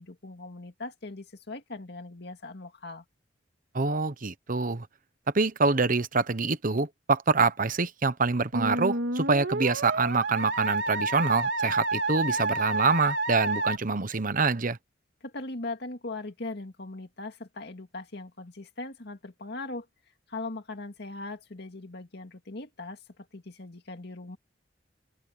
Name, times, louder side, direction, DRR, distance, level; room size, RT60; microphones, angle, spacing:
voice 1, 0.0-3.0 15.2-19.9 20.3-24.4, left 2 dB, 60° left, 2.2 m, -40 dB
voice 2, 3.7-4.9 5.3-14.8, right 4 dB, 45° right, 1.1 m, -26 dB
Musical instrument, 8.5-13.8, right 2 dB, 70° right, 2.4 m, -29 dB
open air
head